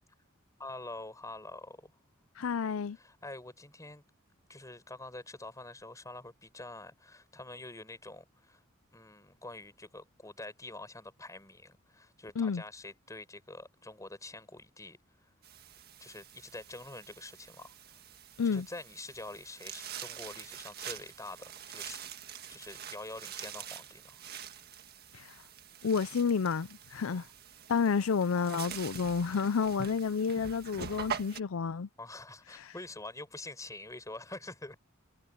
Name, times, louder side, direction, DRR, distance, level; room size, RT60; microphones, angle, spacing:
voice 1, 0.6-1.9 2.9-4.0 4.5-8.6 8.9-15.0 16.0-17.7 18.5-22.0 22.5-24.2 27.0-27.2 32.0-34.8, left 2 dB, 15° left, 5.5 m, -46 dB
voice 2, 2.4-3.0 12.4-12.6 18.4-18.7 25.1-25.3 25.8-27.3 27.7-31.9 32.6-32.7, left 6 dB, 85° left, 0.5 m, -30 dB
sound 1, 15.4-31.4, right 8 dB, 50° right, 1.7 m, -45 dB
head